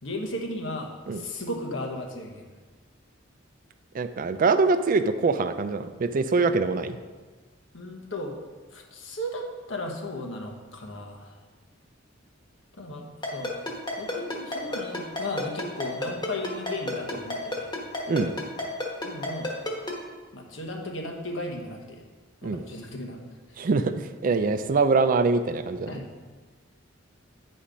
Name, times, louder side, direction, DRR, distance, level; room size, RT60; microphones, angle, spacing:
voice 1, 0.0-2.5 7.7-8.3 8.7-11.3 12.7-13.5 14.0-17.7 19.0-19.5 20.3-22.0 22.4-23.2 25.9-26.1, left 1 dB, 70° left, 1 dB, 1.2 m, -35 dB
voice 2, 3.9-7.0 18.1-18.3 22.4-22.6 23.6-25.9, right 4 dB, 45° right, 10 dB, 0.4 m, -24 dB
Ringtone, 13.2-19.9, left 1 dB, 25° left, 1.3 m, -30 dB
8.7 x 4.3 x 5.1 m, 1.4 s
head